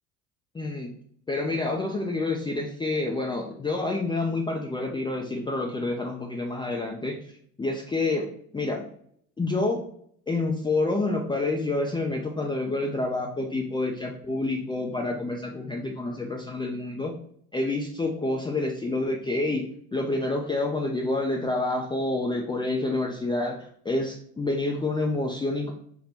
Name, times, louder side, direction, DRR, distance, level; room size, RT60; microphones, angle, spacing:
voice 1, 0.5-0.9 1.3-7.3 7.6-8.3 8.5-8.8 9.4-9.8 10.3-17.1 17.5-19.7 19.9-25.7, left 2 dB, 10° left, -1 dB, 0.5 m, -28 dB
4.3 x 2.2 x 4.1 m, 0.64 s
hypercardioid pair, 75°, 40 cm